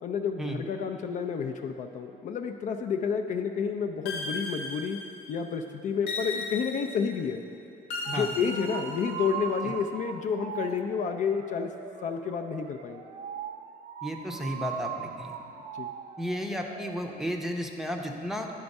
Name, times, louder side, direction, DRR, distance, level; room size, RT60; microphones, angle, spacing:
voice 1, 0.0-5.0 5.3-7.4 8.1-11.7 12.0-13.0 15.8-15.9, left 6 dB, 50° left, 4 dB, 0.4 m, -30 dB
sound 1, 4.1-5.4 6.1-7.2 7.9-9.4, left 2 dB, 90° left, 1.0 m, -36 dB
sound 2, 8.1-16.9, right 9 dB, 50° right, 0.4 m, -40 dB
voice 2, 14.0-15.4 16.2-18.5, equal, ahead, 1 dB, 0.6 m, -33 dB
10.0 x 3.5 x 5.3 m, 2.7 s
cardioid pair, 110°, 17 cm